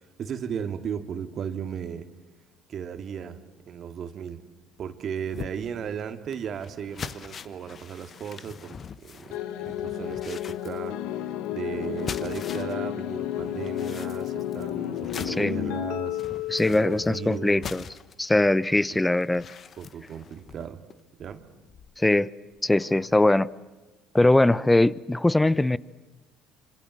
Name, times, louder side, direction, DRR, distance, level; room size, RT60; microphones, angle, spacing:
voice 1, 0.2-2.1 2.7-4.4 4.8-16.2 16.7-17.7 18.9-19.0 19.8-20.8 21.2-21.4, right 7 dB, 50° right, 2.2 m, -36 dB
sound 1, 5.3-12.8 13.1-22.1 22.5-22.7 23.1-23.2, left 6 dB, 45° left, 1.2 m, -43 dB
sound 2, 9.3-17.7, left 12 dB, 70° left, 1.1 m, -32 dB
voice 2, 16.5-17.8 18.2-19.5 22.0-22.3 22.6-23.5 24.1-25.8, left 2 dB, 10° left, 0.9 m, -21 dB
27.0 x 26.0 x 7.8 m
hypercardioid pair, 60°, 0 cm